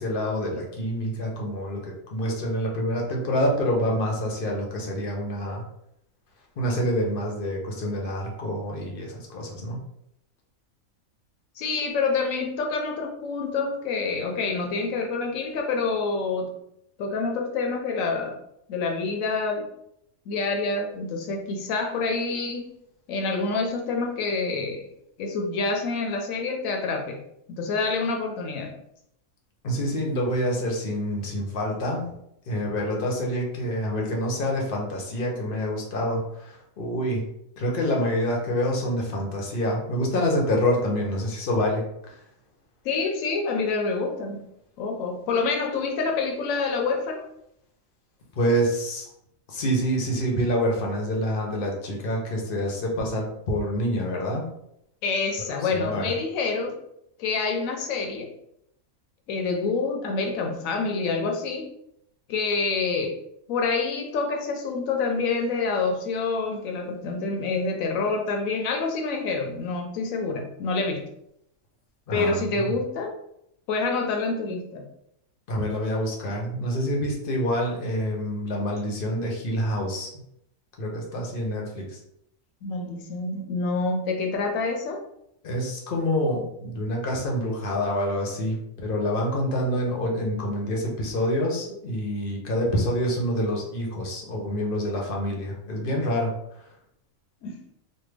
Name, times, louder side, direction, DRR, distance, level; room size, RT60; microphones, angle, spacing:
voice 1, 0.0-1.8 2.1-5.6 6.6-9.8 29.6-32.1 32.5-37.2 37.6-41.8 48.4-49.1 49.5-54.5 55.7-56.1 72.1-72.7 75.5-80.1 80.8-82.0 85.4-96.3, equal, 50° left, 0 dB, 0.7 m, -27 dB
voice 2, 11.6-16.5 17.0-18.4 18.7-19.7 20.3-22.7 23.1-24.9 25.2-27.2 27.5-28.7 42.8-44.4 44.8-47.2 55.0-56.8 57.2-58.3 59.3-61.7 62.3-63.2 63.5-71.1 72.1-73.1 73.7-74.9 82.6-85.0 97.4-97.6, left 4 dB, 70° left, 3 dB, 1.0 m, -27 dB
3.3 x 2.2 x 3.2 m, 0.77 s
omnidirectional pair, 1.5 m